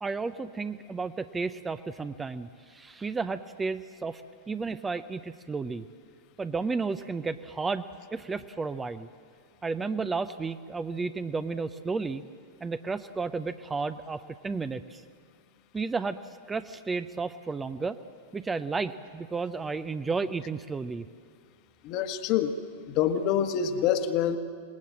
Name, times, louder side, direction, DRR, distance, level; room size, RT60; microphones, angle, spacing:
voice 1, 0.0-4.2 4.5-5.8 6.4-7.8 8.1-9.1 9.6-12.2 12.6-15.0 15.7-16.2 16.5-18.0 18.3-21.1, right 4 dB, 15° right, 11 dB, 0.7 m, -32 dB
voice 2, 21.8-22.5 22.9-24.4, left 9 dB, 40° left, 8 dB, 1.5 m, -26 dB
26.5 x 20.0 x 7.6 m, 2.1 s
figure-of-eight pair, 90°, 0 cm